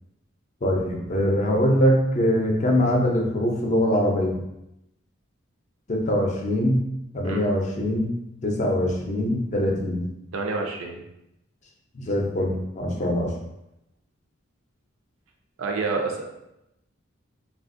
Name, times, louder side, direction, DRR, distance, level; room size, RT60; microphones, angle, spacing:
voice 1, 0.6-4.4 5.9-6.8 7.1-8.1 8.4-10.1 11.9-13.3, equal, 35° left, 0 dB, 0.5 m, -23 dB
voice 2, 10.3-11.0 15.6-16.3, right 3 dB, 80° right, 2 dB, 0.5 m, -28 dB
3.3 x 2.3 x 2.5 m, 0.85 s
head